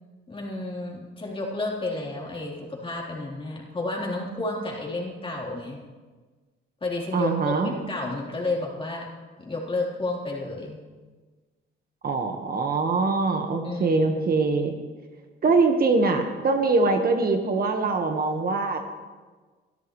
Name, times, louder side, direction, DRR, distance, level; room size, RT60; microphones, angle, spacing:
voice 1, 0.3-5.8 6.8-9.1 9.4-10.8 13.6-14.4, left 2 dB, 25° left, -3 dB, 3.7 m, -31 dB
voice 2, 7.1-7.7 12.0-14.7 15.4-18.9, right 3 dB, 50° right, 5 dB, 1.5 m, -23 dB
23.5 x 12.5 x 3.2 m, 1.4 s
cardioid pair, 90°, 20 cm